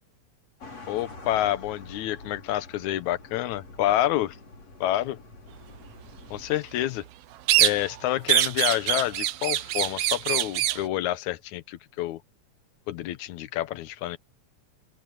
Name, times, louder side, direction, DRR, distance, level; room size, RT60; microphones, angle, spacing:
sound 1, 0.6-6.5, left 2 dB, 55° left, 7.5 m, -46 dB
voice 1, 0.9-4.4 4.8-5.2 6.3-7.0 7.6-12.2 12.9-14.2, left 14 dB, 75° left, 2.3 m, -28 dB
sound 2, 7.5-8.0 8.3-10.8, right 14 dB, 70° right, 1.5 m, -24 dB
open air
omnidirectional pair, 3.4 m